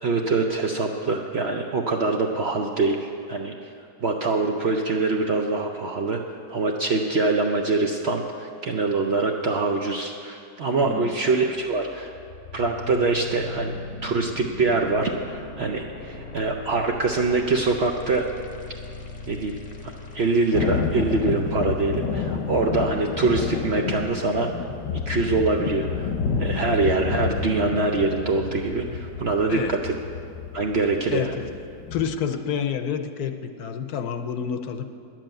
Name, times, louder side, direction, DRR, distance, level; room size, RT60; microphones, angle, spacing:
voice 1, 0.0-3.7 4.0-6.2 6.5-12.2 12.5-13.7 14.0-18.3 19.3-19.6 19.8-24.5 25.1-29.9 30.5-31.3, right 3 dB, 60° right, 2 dB, 0.7 m, -24 dB
voice 2, 10.8-11.1 29.5-29.8 31.1-31.5 31.9-34.8, left 7 dB, 75° left, 8 dB, 1.2 m, -29 dB
sound 1, 11.5-23.5, left 3 dB, 25° left, 0.8 m, -40 dB
Thunder, 20.5-32.1, left 5 dB, 90° left, 1.5 m, -29 dB
10.5 x 7.6 x 8.9 m, 2.5 s
omnidirectional pair, 1.7 m